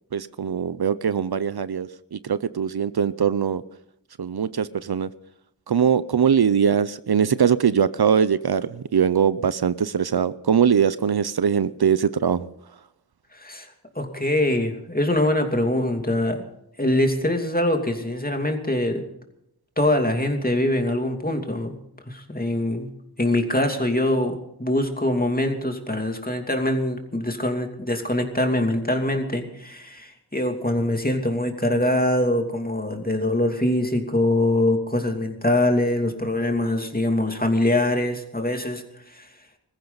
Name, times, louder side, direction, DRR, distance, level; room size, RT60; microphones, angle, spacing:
voice 1, 0.1-3.6 4.2-5.1 5.7-12.4, right 7 dB, 75° right, 0.6 m, -21 dB
voice 2, 13.3-13.7 13.9-16.4 16.8-19.0 19.8-21.7 22.1-22.9 23.2-38.8 39.1-39.3, left 1 dB, 25° left, 2.7 m, -23 dB
21.0 x 15.0 x 4.0 m
wide cardioid pair, 50°, 39 cm